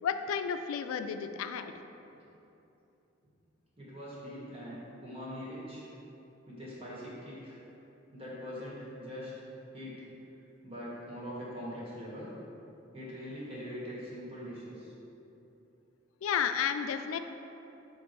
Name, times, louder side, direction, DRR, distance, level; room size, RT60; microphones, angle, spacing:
voice 1, 0.0-1.7 16.2-17.2, left 7 dB, 85° left, 9 dB, 0.3 m, -32 dB
voice 2, 3.8-5.9 6.5-7.6 8.1-9.3 9.7-9.9 10.6-12.3 12.9-14.9, equal, 30° right, -7 dB, 1.5 m, -42 dB
7.8 x 2.6 x 4.6 m, 2.9 s
head